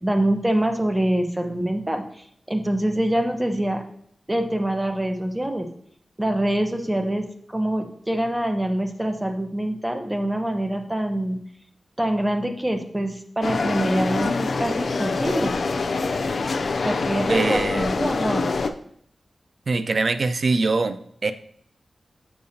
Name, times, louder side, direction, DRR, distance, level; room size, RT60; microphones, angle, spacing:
voice 1, 0.0-3.8 4.3-5.7 6.2-7.2 7.5-11.4 12.0-15.6 16.8-18.5, right 1 dB, 15° right, 4 dB, 1.0 m, -25 dB
sound 1, 13.4-18.7, left 3 dB, 75° left, 0.4 m, -25 dB
voice 2, 17.3-17.9 19.7-21.3, right 3 dB, 65° right, 10 dB, 0.5 m, -23 dB
6.6 x 6.5 x 2.8 m, 0.66 s
cardioid pair, 55°, 0 cm